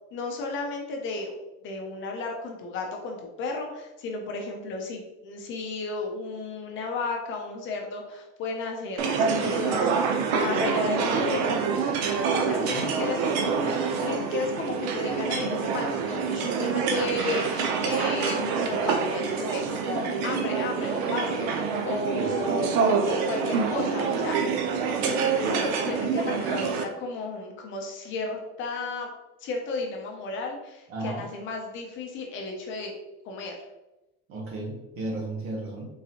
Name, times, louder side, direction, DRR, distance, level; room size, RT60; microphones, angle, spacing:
voice 1, 0.1-1.4 1.6-11.6 12.3-22.7 23.1-24.6 24.9-29.1 29.4-33.0 33.2-33.6, left 3 dB, 40° left, 1 dB, 0.5 m, -33 dB
sound 1, 9.0-26.8, right 5 dB, 85° right, 0.6 m, -26 dB
voice 2, 30.9-31.2 34.3-35.9, right 2 dB, 45° right, -1 dB, 1.0 m, -34 dB
3.8 x 2.6 x 2.8 m, 0.98 s
cardioid pair, 160°, 31 cm